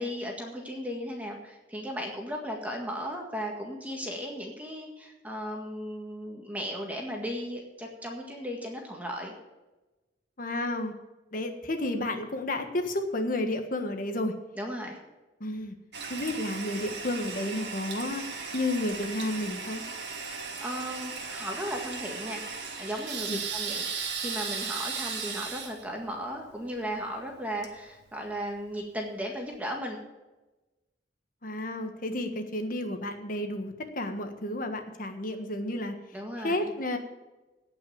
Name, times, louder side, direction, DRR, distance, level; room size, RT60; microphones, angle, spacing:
voice 1, 0.0-9.3 14.6-15.0 20.2-23.8 24.2-30.0 36.1-36.7, equal, 10° right, 0 dB, 1.8 m, -36 dB
voice 2, 10.4-10.9 11.3-14.3 15.4-15.7 16.1-19.8 23.3-23.4 31.4-35.9 36.4-37.0, left 1 dB, 50° left, 6 dB, 1.5 m, -31 dB
Toilet flush, 15.9-28.6, right 5 dB, 70° right, 2.0 m, -37 dB
17.5 x 6.0 x 7.1 m, 1.1 s
head